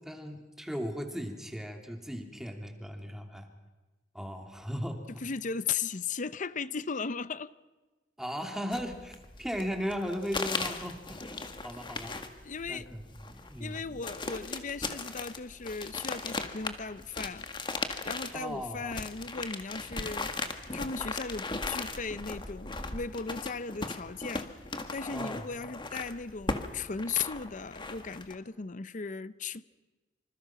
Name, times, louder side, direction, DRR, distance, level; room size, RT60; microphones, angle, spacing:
voice 1, 0.0-3.5 4.1-5.0 8.2-12.1 12.7-14.0 18.3-19.0 25.1-25.5, equal, 5° right, 2.9 m, -37 dB
voice 2, 5.2-7.5 12.4-12.9 13.6-17.5 18.0-20.3 20.7-24.5 24.9-29.6, left 5 dB, 45° left, 0.7 m, -37 dB
sound 1, 8.7-28.4, left 3 dB, 25° left, 1.8 m, -38 dB
26.5 x 26.5 x 6.0 m
head